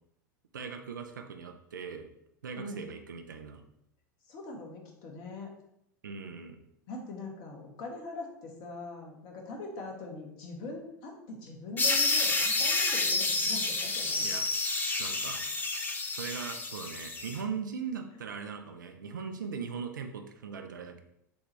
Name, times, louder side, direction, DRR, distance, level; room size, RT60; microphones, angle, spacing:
voice 1, 0.5-2.1 2.4-3.6 6.0-6.6 14.2-14.5 15.0-15.4 16.1-21.0, right 6 dB, 70° right, 5 dB, 0.5 m, -39 dB
voice 2, 2.6-2.9 4.3-5.5 6.9-14.3, left 2 dB, 45° left, 1 dB, 1.1 m, -42 dB
sound 1, 11.8-17.4, left 3 dB, 15° left, 0.6 m, -29 dB
7.0 x 2.4 x 3.1 m, 0.77 s
figure-of-eight pair, 85°, 11 cm